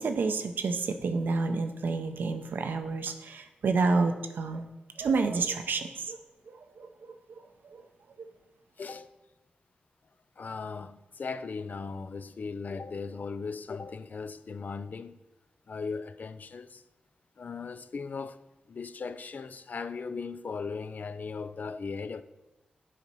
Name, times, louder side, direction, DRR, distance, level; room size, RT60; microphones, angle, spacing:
voice 1, 0.0-4.6 5.0-6.2 6.5-7.8 8.2-8.3, right 4 dB, 80° right, 0.6 m, -30 dB
voice 2, 8.8-9.1 10.4-15.2 15.7-16.8 17.4-18.4 18.7-22.2, left 4 dB, 60° left, 0.4 m, -38 dB
7.5 x 4.0 x 5.4 m
cardioid pair, 55°, 3 cm